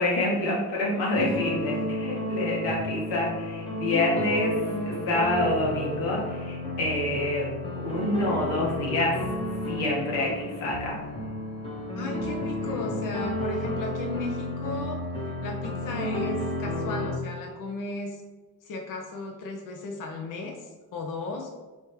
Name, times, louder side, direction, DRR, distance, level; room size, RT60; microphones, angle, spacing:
voice 1, 0.0-7.5 7.7-9.2 9.7-11.0, left 2 dB, 75° left, -3 dB, 1.3 m, -27 dB
voice 2, 1.2-1.5 11.9-15.0 15.4-18.2 18.6-21.5, left 2 dB, 45° left, 2 dB, 0.7 m, -35 dB
sound 1, 1.2-17.1, left 1 dB, 10° left, 1.0 m, -32 dB
4.1 x 3.5 x 3.1 m, 1.3 s
hypercardioid pair, 50°, 46 cm